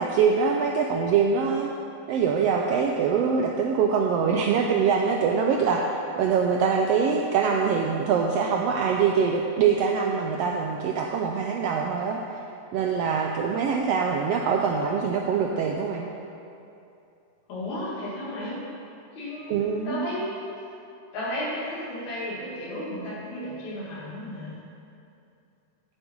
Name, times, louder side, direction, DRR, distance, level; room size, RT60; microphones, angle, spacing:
voice 1, 0.0-1.7 2.1-5.8 6.2-12.2 12.7-16.0 19.5-20.1, right 6 dB, 85° right, 1 dB, 1.4 m, -24 dB
voice 2, 17.5-18.6 19.2-20.4 21.1-24.6, left 1 dB, 70° left, -7 dB, 3.7 m, -33 dB
11.0 x 7.9 x 4.5 m, 2.7 s
omnidirectional pair, 3.4 m